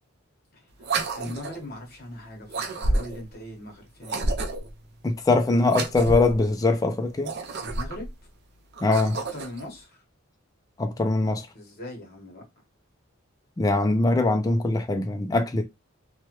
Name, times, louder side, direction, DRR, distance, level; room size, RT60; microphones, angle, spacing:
sound 1, 0.8-1.7 2.5-3.3 4.0-4.8 5.7-6.4 7.1-8.1 8.7-9.6, right 2 dB, 50° right, 0.5 m, -29 dB
voice 1, 1.1-4.3 7.6-8.1 9.1-10.0 11.5-12.4, left 1 dB, 45° left, 1.0 m, -40 dB
voice 2, 5.0-7.3 8.8-9.2 10.8-11.5 13.6-15.6, left 2 dB, 15° left, 0.3 m, -22 dB
3.1 x 2.2 x 2.9 m
head